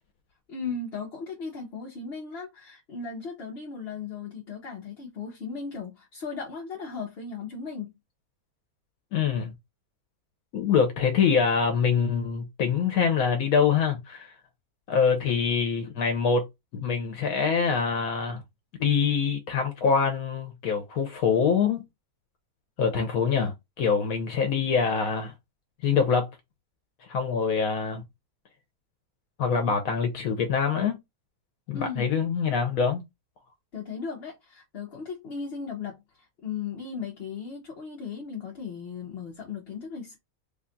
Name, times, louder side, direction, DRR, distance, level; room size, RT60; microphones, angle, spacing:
voice 1, 0.5-7.9 31.7-32.0 33.7-40.2, left 5 dB, 50° left, 0.9 m, -36 dB
voice 2, 9.1-9.5 10.5-14.3 14.9-16.4 16.7-18.4 18.8-21.8 22.8-25.3 25.8-26.3 27.1-28.0 29.4-31.0 31.7-33.0, left 6 dB, 75° left, 1.1 m, -24 dB
3.5 x 2.3 x 3.8 m
omnidirectional pair, 1.5 m